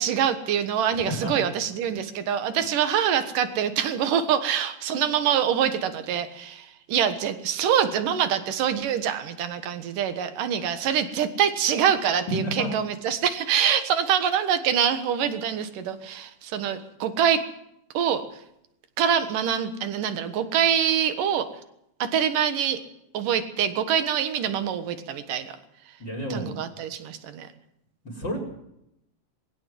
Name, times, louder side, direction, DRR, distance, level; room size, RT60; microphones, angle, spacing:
voice 1, 0.0-17.4 17.9-18.2 19.0-21.5 22.0-22.8 23.1-25.5 26.3-27.5, right 8 dB, 75° right, 10 dB, 3.0 m, -25 dB
voice 2, 26.0-26.5 28.2-28.4, equal, 30° left, -2 dB, 5.4 m, -30 dB
20.5 x 17.0 x 7.7 m, 0.80 s
omnidirectional pair, 3.9 m